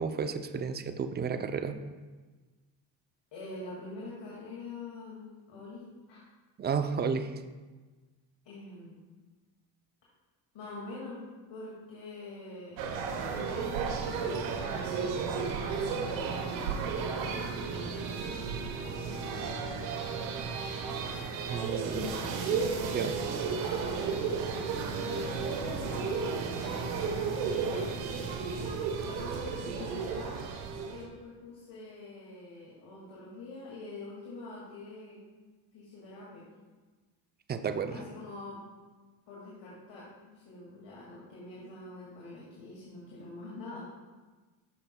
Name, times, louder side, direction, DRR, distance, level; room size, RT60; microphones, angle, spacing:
voice 1, 0.0-1.8 6.6-7.3 21.5-22.1 22.9-23.1 37.5-37.9, right 6 dB, 20° right, 9 dB, 0.4 m, -32 dB
voice 2, 3.3-6.2 6.6-6.7 8.4-9.0 10.5-12.9 13.2-15.2 15.6-20.5 21.9-23.1 24.6-28.1 29.0-30.4 30.8-35.2 35.7-36.5 37.9-38.6 39.3-43.8, left 3 dB, 55° left, -6 dB, 2.2 m, -45 dB
sound 1, 12.8-31.1, right 5 dB, 85° right, 1.0 m, -33 dB
12.0 x 5.5 x 2.2 m, 1.3 s
supercardioid pair, 80°, 50 cm